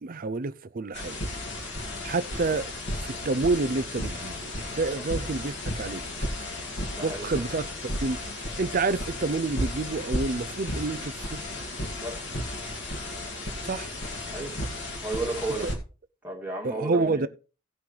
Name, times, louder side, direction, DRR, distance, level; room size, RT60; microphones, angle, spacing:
voice 1, 0.0-1.2 2.0-2.7 3.0-6.0 7.0-7.7 8.0-8.2 8.6-11.4 13.6-13.9 15.5-15.7 16.6-17.3, right 3 dB, 40° right, 0.5 m, -28 dB
sound 1, 0.9-15.7, left 1 dB, 50° left, 2.1 m, -34 dB
voice 2, 6.9-7.3 12.0-12.2 14.3-14.6 15.0-15.7 16.2-17.3, right 2 dB, 10° right, 2.4 m, -33 dB
17.5 x 5.9 x 3.3 m
head